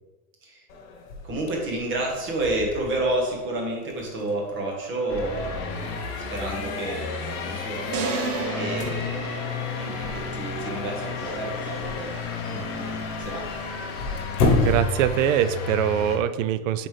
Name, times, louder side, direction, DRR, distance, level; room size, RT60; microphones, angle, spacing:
sound 1, 0.7-15.7, left 3 dB, 60° left, 1.3 m, -33 dB
voice 1, 1.2-5.9 6.3-9.3 9.8-13.5, right 2 dB, 25° right, -1 dB, 1.4 m, -30 dB
sound 2, 5.1-16.2, left 4 dB, 35° left, 0.9 m, -32 dB
sound 3, 7.9-10.2, right 5 dB, 85° right, 1.0 m, -32 dB
voice 2, 14.5-16.9, right 10 dB, 60° right, 13 dB, 0.5 m, -23 dB
7.2 x 4.2 x 3.3 m, 1.2 s
supercardioid pair, 155°, 44 cm